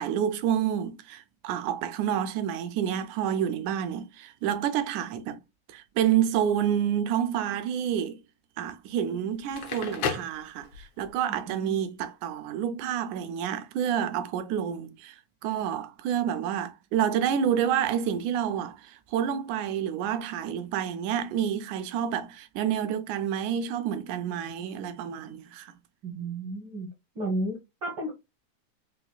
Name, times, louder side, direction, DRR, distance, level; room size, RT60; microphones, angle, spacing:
voice 1, 0.0-5.4 5.7-8.2 8.6-25.7, right 9 dB, 80° right, 1.9 m, -29 dB
Crackle, 9.4-11.1, left 6 dB, 70° left, 2.0 m, -33 dB
voice 2, 11.5-11.9 26.0-26.9 27.1-28.1, right 1 dB, 65° right, 1.2 m, -33 dB
5.6 x 2.2 x 2.3 m
omnidirectional pair, 3.4 m